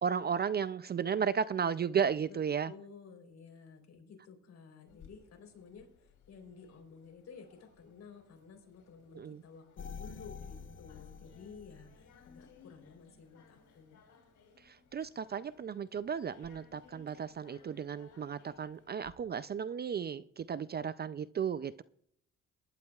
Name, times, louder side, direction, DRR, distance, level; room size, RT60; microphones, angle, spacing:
voice 1, 0.0-2.7 9.1-9.4 14.6-21.8, right 7 dB, 35° right, 15 dB, 0.4 m, -34 dB
voice 2, 2.7-14.0, left 5 dB, 60° left, 4 dB, 3.8 m, -53 dB
sound 1, 4.9-19.1, left 6 dB, 75° left, 3.1 m, -63 dB
sound 2, 9.8-12.6 13.1-13.2, left 5 dB, 40° left, 0.8 m, -48 dB
22.0 x 11.5 x 2.4 m, 0.67 s
cardioid pair, 90°, 30 cm